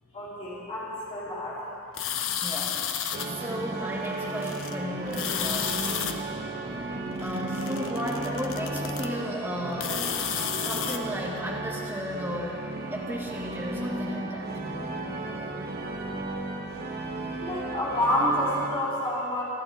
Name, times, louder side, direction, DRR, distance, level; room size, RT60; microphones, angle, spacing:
voice 1, 0.1-1.7 17.4-19.4, left 1 dB, 25° left, -9 dB, 3.7 m, -28 dB
sound 1, 1.9-3.3 4.0-4.7 5.1-6.1 7.1-9.1 9.7-11.0, left 9 dB, 60° left, 0.8 m, -32 dB
voice 2, 2.3-2.9 3.2-6.0 6.7-10.3 10.6-14.6, equal, 10° right, -4 dB, 2.2 m, -35 dB
sound 2, 3.1-18.7, right 2 dB, 45° right, 1.5 m, -35 dB
Bowed string instrument, 3.6-9.7, right 2 dB, 80° right, 1.0 m, -40 dB
28.5 x 11.0 x 3.8 m, 2.8 s
head